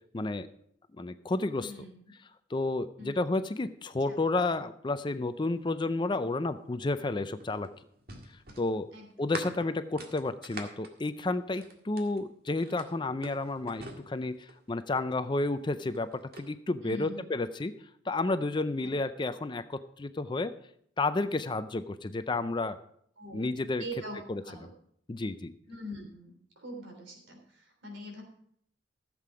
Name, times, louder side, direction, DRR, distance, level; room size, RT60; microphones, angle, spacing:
voice 1, 0.1-0.5 1.0-1.7 2.5-7.7 8.6-8.9 9.2-17.7 18.1-20.5 21.0-22.8 23.3-23.8 24.3-24.4 25.1-25.5, left 2 dB, 25° left, 11 dB, 0.4 m, -31 dB
voice 2, 1.6-2.0 3.0-3.1 3.4-3.5 4.1-4.2 8.9-9.1 16.8-17.2 23.2-23.5 23.8-24.2 24.4-24.7 25.7-28.2, right 1 dB, 70° right, 2 dB, 3.4 m, -43 dB
sound 1, 7.0-12.2 12.6-14.7 15.7-16.5, right 2 dB, 50° right, 1.8 m, -45 dB
15.0 x 7.6 x 5.0 m, 0.69 s
head